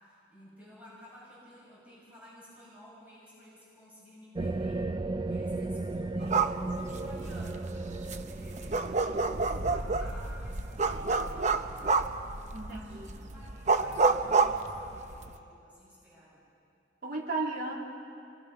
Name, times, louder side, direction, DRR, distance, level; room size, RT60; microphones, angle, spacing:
voice 1, 0.0-12.1 12.6-16.4, equal, 10° right, -9 dB, 7.6 m, -53 dB
sound 1, 4.3-11.6, right 2 dB, 25° right, 0.5 m, -36 dB
sound 2, 6.2-15.4, right 4 dB, 45° right, 0.8 m, -29 dB
voice 2, 12.5-13.3 17.0-17.7, right 3 dB, 60° right, -2 dB, 3.7 m, -35 dB
26.5 x 23.0 x 5.6 m, 2.6 s
head